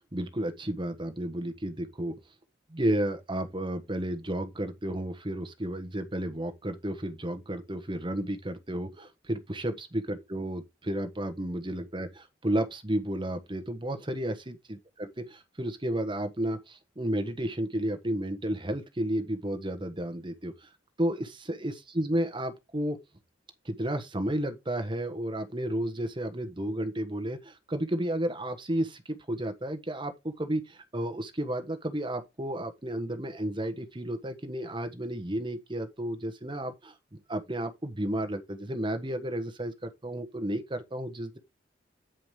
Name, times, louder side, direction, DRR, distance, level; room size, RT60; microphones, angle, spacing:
voice 1, 0.1-2.2 2.7-15.1 15.3-20.7 21.0-23.0 23.6-41.4, right 1 dB, 25° right, 1.3 m, -32 dB
9.0 x 5.1 x 4.9 m
head